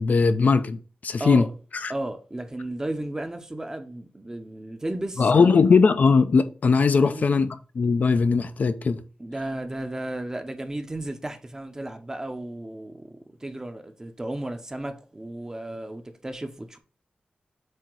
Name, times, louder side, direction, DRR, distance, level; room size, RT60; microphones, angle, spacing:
voice 1, 0.0-1.4 1.8-1.9 5.2-7.5 7.7-9.0, left 5 dB, 60° left, 0.5 m, -19 dB
voice 2, 1.9-5.6 7.0-7.3 9.2-16.8, right 1 dB, 20° right, 0.8 m, -34 dB
7.7 x 2.8 x 4.6 m
wide cardioid pair, 120°, 3 cm